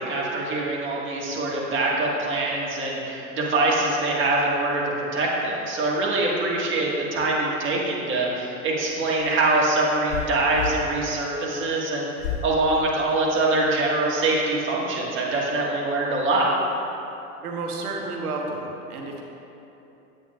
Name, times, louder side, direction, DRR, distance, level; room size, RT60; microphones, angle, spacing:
voice 1, 0.0-12.1 12.4-16.5, right 2 dB, 25° right, -4 dB, 1.5 m, -24 dB
sound 1, 8.9-10.8 12.2-12.5 13.1-13.7, left 8 dB, 35° left, 1.6 m, -32 dB
voice 2, 17.4-19.2, right 3 dB, 75° right, 1 dB, 1.2 m, -31 dB
9.0 x 8.0 x 2.3 m, 3.0 s
hypercardioid pair, 100°, 45 cm